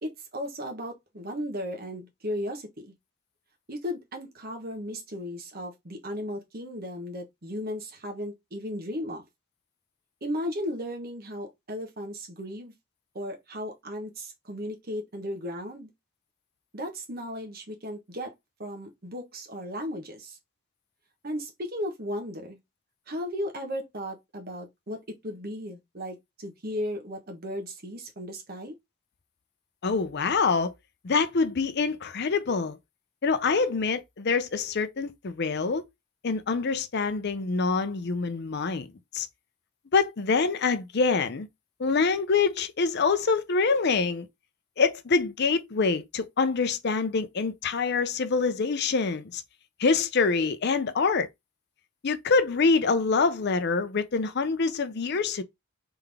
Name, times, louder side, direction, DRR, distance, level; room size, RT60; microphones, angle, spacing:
voice 1, 0.0-2.9 3.7-9.2 10.2-12.7 13.1-15.9 16.7-18.3 18.6-20.4 21.2-22.6 23.1-28.7, equal, 40° right, 1.1 m, -35 dB
voice 2, 29.8-30.7 31.0-32.8 33.2-35.8 36.2-38.9 39.1-39.3 39.9-41.5 41.8-44.3 44.8-49.4 49.8-51.3 52.0-55.4, left 4 dB, 45° left, 0.5 m, -25 dB
3.7 x 3.5 x 3.4 m
head